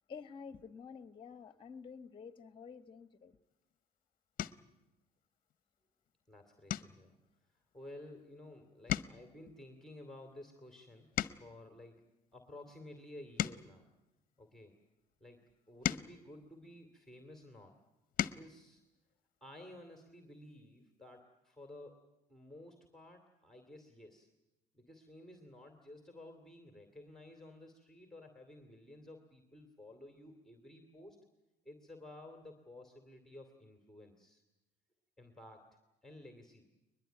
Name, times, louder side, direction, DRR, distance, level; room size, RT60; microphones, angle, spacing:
voice 1, 0.1-3.4, left 6 dB, 30° left, 1.1 m, -50 dB
sound 1, 3.5-3.8 4.3-4.8 5.3-5.6 5.9-6.1 6.6-8.5 8.8-11.7 12.3-14.8 15.4-17.3 17.8-18.5 19.9-20.0 20.3-20.5, left 11 dB, 55° left, 0.7 m, -41 dB
voice 2, 6.3-7.1 7.7-12.0 12.3-13.8 14.4-14.7 15.2-15.4 15.7-17.7 18.2-18.8 19.4-24.3 24.7-31.2 31.6-34.4 35.2-35.6 36.0-36.7, left 1 dB, ahead, 2.6 m, -54 dB
22.0 x 21.0 x 9.2 m
cardioid pair, 110°, 17 cm